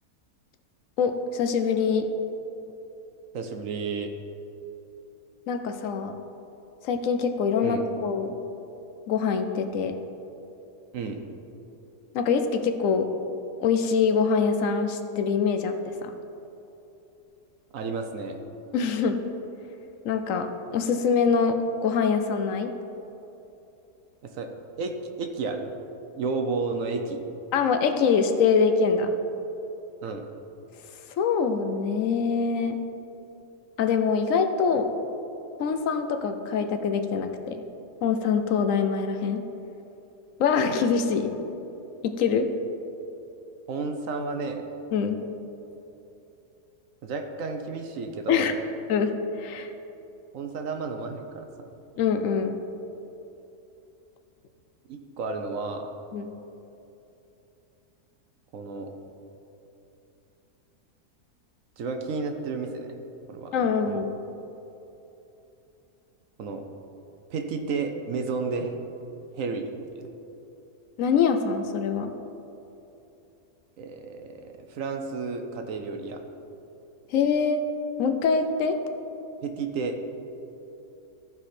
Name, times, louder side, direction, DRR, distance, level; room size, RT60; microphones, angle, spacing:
voice 1, 1.0-2.1 5.5-6.1 6.8-8.4 9.1-9.9 12.1-13.1 13.6-16.1 18.7-19.2 20.0-21.6 21.8-22.7 27.5-29.1 31.2-32.8 33.8-34.9 35.6-37.6 38.0-39.4 40.4-41.3 42.0-42.5 44.9-45.2 48.3-48.5 48.9-49.1 49.4-49.7 52.0-52.6 56.1-56.3 63.5-64.1 71.0-72.1 77.1-77.6 78.0-78.8, left 6 dB, 65° left, 7 dB, 1.0 m, -24 dB
voice 2, 3.3-4.1 7.6-7.8 10.9-11.2 17.7-18.4 24.4-24.5 24.8-25.7 26.1-27.2 30.0-30.2 43.7-44.6 47.0-48.5 50.3-51.5 54.9-55.9 58.5-58.9 61.8-63.0 63.3-63.6 63.9-64.0 66.4-66.6 67.3-68.8 69.4-70.1 73.8-76.2 79.4-80.0, right 4 dB, 65° right, 5 dB, 1.0 m, -32 dB
14.0 x 4.8 x 4.3 m, 2.9 s
omnidirectional pair, 1.6 m